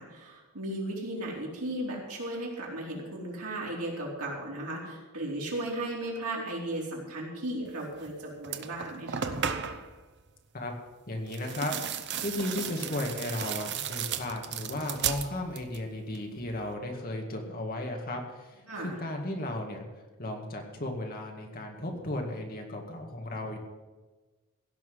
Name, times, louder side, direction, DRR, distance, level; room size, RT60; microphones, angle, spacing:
voice 1, 0.0-9.3 18.7-19.0, right 1 dB, 80° right, -3 dB, 4.4 m, -36 dB
sound 1, 8.0-8.1 8.4-9.9 11.3-15.9 16.1-16.7, right 7 dB, 50° right, 0.8 m, -35 dB
voice 2, 11.1-11.7 12.2-19.9 20.2-23.6, left 1 dB, 40° left, 2 dB, 2.0 m, -35 dB
16.5 x 6.1 x 9.5 m, 1.3 s
head